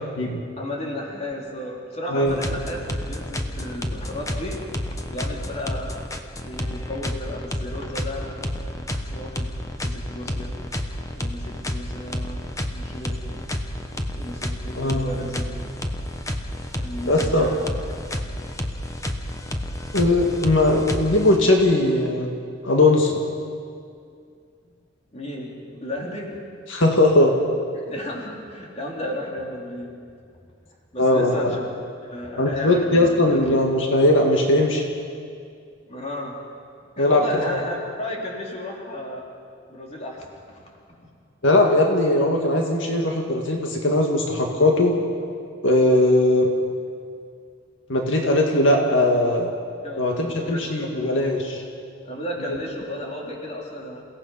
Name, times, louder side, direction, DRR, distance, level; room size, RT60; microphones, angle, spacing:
voice 1, 0.6-4.7 5.1-6.1 6.4-9.5 9.8-10.5 11.1-13.5 14.1-15.4 16.7-17.7 18.1-18.3 25.1-26.3 27.7-29.9 30.9-31.6 32.0-33.7 35.9-36.4 37.0-39.2 39.7-40.7 49.8-51.2 52.0-54.0, left 1 dB, 35° left, -1 dB, 3.3 m, -34 dB
sound 1, 2.3-21.7, left 1 dB, 15° left, 1.1 m, -30 dB
voice 2, 14.8-15.1 17.1-17.5 19.9-22.4 22.6-23.2 26.7-27.3 31.0-31.5 32.4-34.8 37.0-37.4 41.4-44.9 45.6-46.5 47.9-49.5 50.0-51.6, left 1 dB, 80° left, 1 dB, 1.9 m, -19 dB
28.5 x 17.0 x 5.6 m, 2.3 s
head